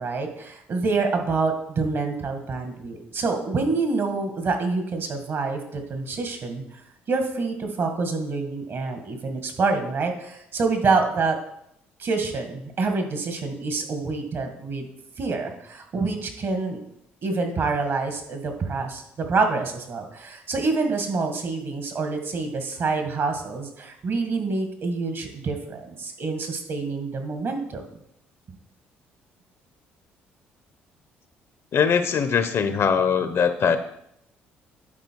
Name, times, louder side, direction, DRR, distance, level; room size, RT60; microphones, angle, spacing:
voice 1, 0.0-6.6 7.1-11.4 12.0-14.9 15.2-16.8 17.2-27.8, right 4 dB, 55° right, 5 dB, 2.0 m, -27 dB
voice 2, 31.7-33.8, left 6 dB, 55° left, 10 dB, 0.8 m, -21 dB
11.0 x 4.4 x 4.7 m, 0.75 s
supercardioid pair, 60°, 5 cm